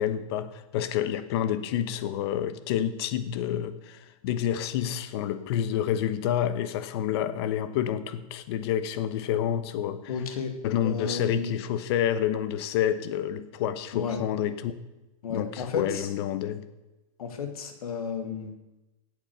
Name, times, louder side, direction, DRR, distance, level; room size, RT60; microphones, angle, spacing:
voice 1, 0.0-10.1 10.6-14.8 15.3-16.7, left 10 dB, 45° left, 12 dB, 1.1 m, -28 dB
voice 2, 10.1-10.5 10.8-11.6 13.9-14.2 15.2-16.1 17.2-18.5, left 5 dB, 85° left, 6 dB, 2.5 m, -32 dB
16.5 x 8.5 x 6.7 m, 1.0 s
supercardioid pair, 155°, 18 cm